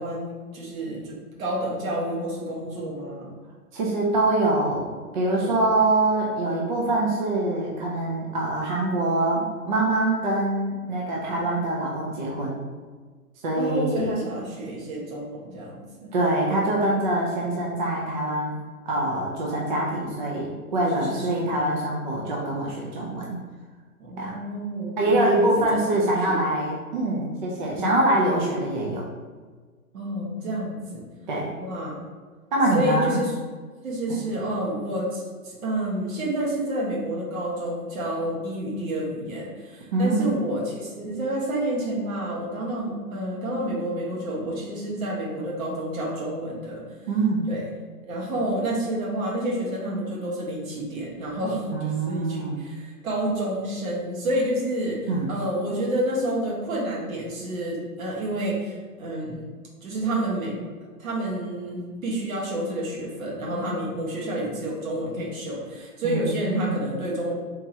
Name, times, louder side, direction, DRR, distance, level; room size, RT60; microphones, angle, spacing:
voice 1, 0.0-3.3 5.3-5.5 11.3-11.4 13.6-16.1 20.9-21.5 24.0-26.0 27.9-28.0 29.9-31.1 31.6-32.0 32.7-33.3 33.8-46.9 47.5-47.6 48.1-59.4 59.8-60.6 61.0-67.3, right 1 dB, 60° right, -4 dB, 1.4 m, -29 dB
voice 2, 3.7-4.9 5.1-12.6 13.4-14.1 16.1-18.5 18.9-23.4 24.2-24.3 25.0-29.1 31.3-31.5 32.5-33.2 34.1-34.2 39.9-40.4 47.1-47.5 51.7-52.6 55.1-55.3 66.0-66.7, right 2 dB, 35° right, -3 dB, 0.4 m, -24 dB
3.5 x 3.0 x 2.7 m, 1.5 s
hypercardioid pair, 125°, 46 cm